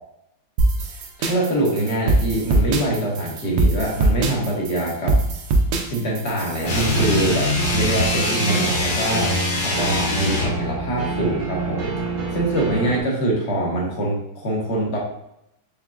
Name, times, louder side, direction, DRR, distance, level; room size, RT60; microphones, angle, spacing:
sound 1, 0.6-6.9, right 2 dB, 85° right, 1.6 m, -22 dB
voice 1, 1.2-5.2 5.9-9.4 9.6-11.9 12.3-15.0, right 1 dB, 40° left, -2 dB, 1.1 m, -24 dB
sound 2, 6.6-10.6, left 1 dB, 70° left, 1.9 m, -23 dB
sound 3, 6.6-13.0, right 3 dB, 60° right, 1.0 m, -28 dB
5.0 x 4.0 x 2.3 m, 0.81 s
omnidirectional pair, 2.4 m